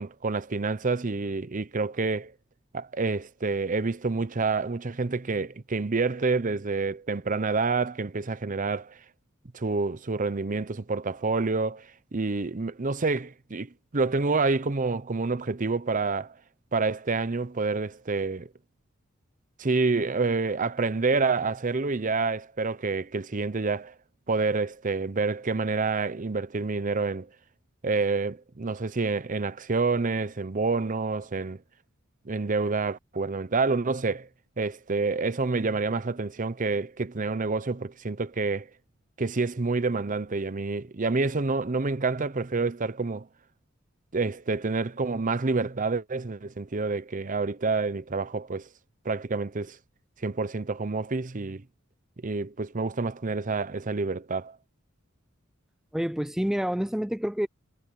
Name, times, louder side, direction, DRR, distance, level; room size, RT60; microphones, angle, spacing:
voice 1, 0.0-2.3 2.7-9.0 9.5-16.3 16.7-18.5 19.6-23.9 24.3-27.3 27.8-31.6 32.2-34.3 34.6-38.7 39.2-43.3 44.1-48.7 49.0-49.8 50.2-51.6 52.2-54.6, right 3 dB, 40° right, 0.8 m, -28 dB
voice 2, 55.9-57.5, equal, ahead, 0.4 m, -28 dB
head